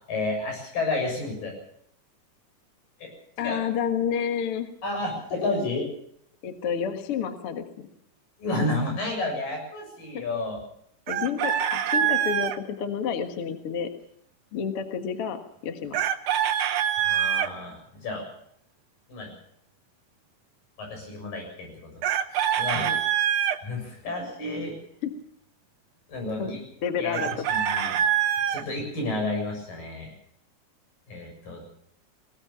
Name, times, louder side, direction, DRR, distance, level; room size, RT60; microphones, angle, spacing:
voice 1, 0.1-1.5 3.0-3.1 3.4-3.6 4.8-5.9 8.4-10.6 17.0-18.3 19.1-19.3 20.8-21.9 22.3-23.0 23.6-24.7 26.1-26.6 27.0-27.2 27.5-28.0 28.5-30.1 31.1-31.7, left 2 dB, 90° left, 2 dB, 8.9 m, -31 dB
voice 2, 3.4-4.7 6.4-7.9 11.1-13.9 14.5-16.1 22.8-23.0 26.4-26.5 26.8-27.5, left 7 dB, 50° left, 7 dB, 2.1 m, -30 dB
Chicken rooster, 11.1-12.6 15.9-17.5 22.0-23.6 27.1-28.6, right 9 dB, 60° right, 1.9 m, -25 dB
20.0 x 18.5 x 7.2 m, 0.70 s
omnidirectional pair, 3.8 m